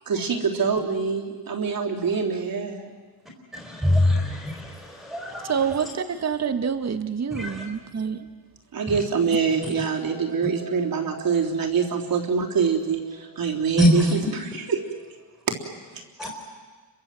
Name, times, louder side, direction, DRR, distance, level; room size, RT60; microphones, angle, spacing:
voice 1, 0.0-2.9 8.7-14.8 15.9-16.3, right 5 dB, 50° right, 1 dB, 3.7 m, -25 dB
voice 2, 3.5-4.7 5.0-5.6 7.3-7.6 13.8-14.0 16.2-16.3, left 1 dB, ahead, 0 dB, 4.2 m, -22 dB
voice 3, 5.5-8.2, right 7 dB, 35° right, 8 dB, 1.8 m, -27 dB
30.0 x 24.0 x 7.8 m, 1.4 s
cardioid pair, 120°, 44 cm